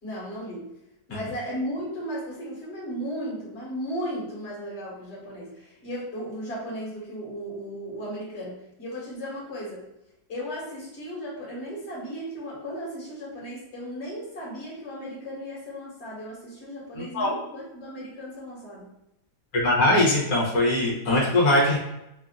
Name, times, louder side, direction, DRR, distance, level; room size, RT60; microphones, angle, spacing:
voice 1, 0.0-0.7 1.1-9.9 10.3-18.9, equal, 40° left, -6 dB, 1.8 m, -35 dB
voice 2, 16.9-17.3 19.5-21.8, left 1 dB, 65° left, -4 dB, 1.6 m, -21 dB
4.9 x 2.7 x 2.4 m, 0.86 s
omnidirectional pair, 1.7 m